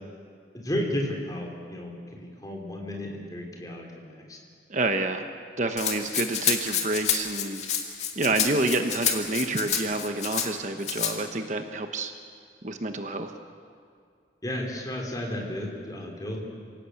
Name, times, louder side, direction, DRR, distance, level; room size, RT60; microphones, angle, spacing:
voice 1, 0.5-4.4 14.4-16.4, left 1 dB, 20° left, 0 dB, 3.9 m, -33 dB
voice 2, 4.7-5.2 5.6-7.7 8.2-12.1 12.6-13.3, right 2 dB, 40° right, 6 dB, 1.1 m, -28 dB
Rattle (instrument), 5.8-10.5 10.8-11.1, left 7 dB, 40° left, 2.3 m, -28 dB
27.5 x 18.0 x 8.3 m, 2.3 s
head